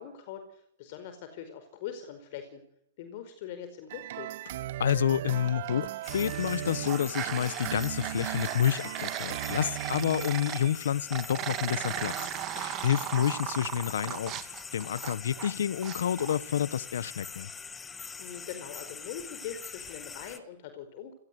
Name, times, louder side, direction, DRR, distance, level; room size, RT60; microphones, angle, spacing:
voice 1, 0.0-2.6 3.0-4.3 18.2-21.1, left 9 dB, 50° left, 4.9 m, -42 dB
sound 1, 3.9-10.8, right 13 dB, 55° right, 1.6 m, -38 dB
voice 2, 4.8-12.3 12.6-14.3 14.7-17.5, left 9 dB, 75° left, 1.2 m, -29 dB
sound 2, 5.9-6.4 6.7-10.6 11.1-15.5 15.8-16.4, right 14 dB, 30° right, 2.5 m, -37 dB
sound 3, 6.0-20.4, left 5 dB, 15° left, 2.0 m, -44 dB
26.0 x 18.5 x 9.7 m
hypercardioid pair, 140°, 0 cm